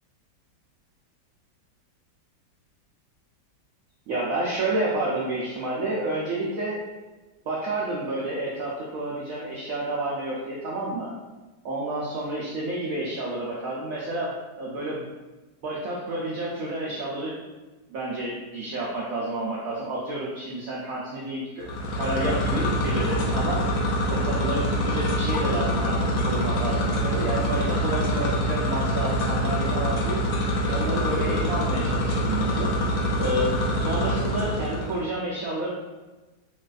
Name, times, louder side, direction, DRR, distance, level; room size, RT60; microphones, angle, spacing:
voice 1, 4.1-6.8 7.5-11.1 11.6-15.1 15.6-17.4 17.9-21.7 21.9-23.6 24.1-30.2 30.7-32.7 33.2-35.7, right 2 dB, 90° right, -5 dB, 0.7 m, -30 dB
sound 1, 21.6-35.0, equal, 80° left, 0.7 m, -25 dB
4.1 x 2.3 x 2.3 m, 1.2 s
omnidirectional pair, 2.0 m